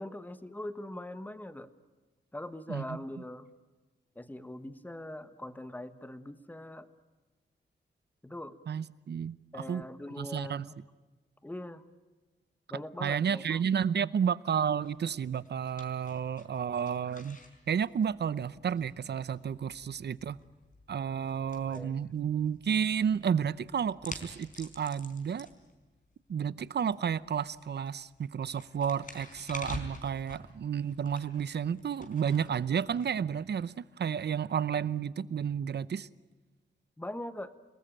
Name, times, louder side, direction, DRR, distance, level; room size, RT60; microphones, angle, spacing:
voice 1, 0.0-1.7 2.3-3.5 4.1-6.9 8.2-8.6 9.5-10.7 11.4-11.8 12.7-13.6 21.5-22.0 37.0-37.5, left 1 dB, 10° left, 1.3 m, -42 dB
voice 2, 8.7-9.8 10.2-10.7 13.0-17.4 17.7-20.4 20.9-25.5 26.3-36.1, right 7 dB, 60° right, 0.8 m, -31 dB
sound 1, 14.5-33.7, left 3 dB, 45° left, 4.5 m, -50 dB
29.5 x 20.0 x 8.9 m
wide cardioid pair, 150°, 19 cm